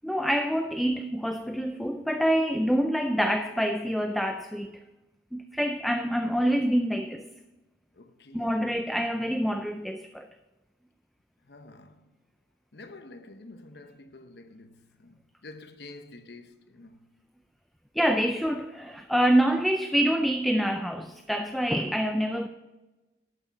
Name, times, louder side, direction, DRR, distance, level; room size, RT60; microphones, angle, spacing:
voice 1, 0.0-4.8 5.3-7.3 8.3-10.3 18.0-22.5, equal, ahead, 0.3 m, -26 dB
voice 2, 7.9-8.6 11.4-12.1 12.7-17.1, left 2 dB, 70° left, 0.9 m, -48 dB
12.0 x 6.3 x 5.5 m
head